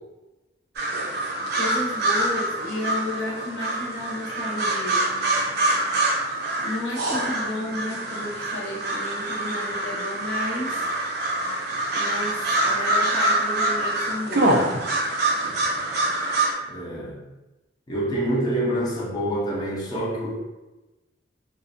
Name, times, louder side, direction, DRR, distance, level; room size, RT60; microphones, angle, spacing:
sound 1, 0.8-16.5, right 2 dB, 55° right, 0.4 m, -25 dB
voice 1, 1.5-5.0 6.6-10.9 11.9-14.6, left 2 dB, 75° left, -3 dB, 0.6 m, -32 dB
voice 2, 16.7-17.2 17.9-20.4, right 1 dB, 20° left, -6 dB, 0.4 m, -26 dB
2.4 x 2.1 x 2.5 m, 1.1 s
head